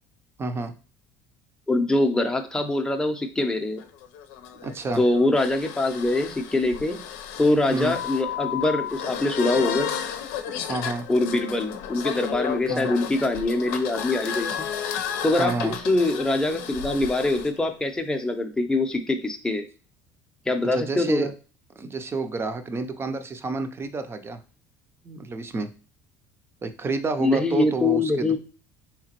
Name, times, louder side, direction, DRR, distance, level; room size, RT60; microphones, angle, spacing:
voice 1, 0.4-0.7 4.6-5.0 7.7-8.0 10.6-11.1 12.7-12.9 15.3-15.8 20.7-21.3 21.8-24.4 25.0-25.7 26.6-28.4, right 3 dB, 30° right, 9 dB, 0.6 m, -29 dB
voice 2, 1.7-3.8 5.0-7.0 7.4-9.9 11.1-14.7 15.2-19.6 20.5-21.3 27.2-28.4, left 2 dB, 10° left, 4 dB, 0.7 m, -24 dB
sound 1, 3.8-17.5, left 9 dB, 85° left, 0.6 m, -33 dB
3.6 x 2.9 x 2.9 m, 0.36 s
supercardioid pair, 95°, 9 cm